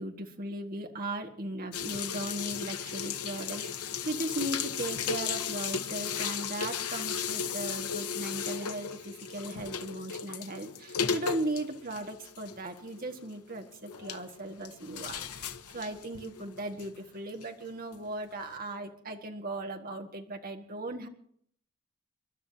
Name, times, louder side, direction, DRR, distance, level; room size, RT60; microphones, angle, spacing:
voice 1, 0.0-21.1, right 1 dB, 40° right, 4 dB, 1.8 m, -38 dB
sound 1, 1.7-17.5 17.9-18.1 18.4-18.5, left 7 dB, 85° left, 1.2 m, -36 dB
30.0 x 12.0 x 2.9 m, 0.63 s
head